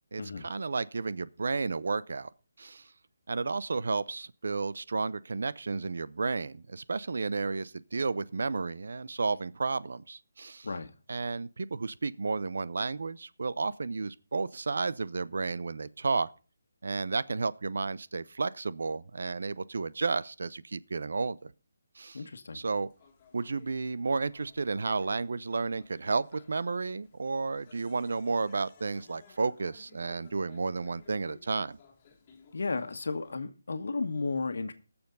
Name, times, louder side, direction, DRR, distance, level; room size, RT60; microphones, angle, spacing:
voice 1, 0.1-2.3 2.6-2.9 3.3-10.7 11.1-16.3 16.8-21.5 22.0-22.2 22.5-22.9 23.3-31.8, right 4 dB, 70° right, 0.7 m, -32 dB
voice 2, 22.1-22.6 32.5-34.7, left 3 dB, 70° left, 1.5 m, -33 dB
sound 1, 22.8-33.4, left 6 dB, 25° left, 2.0 m, -60 dB
19.5 x 7.1 x 3.9 m
hypercardioid pair, 170°, 0 cm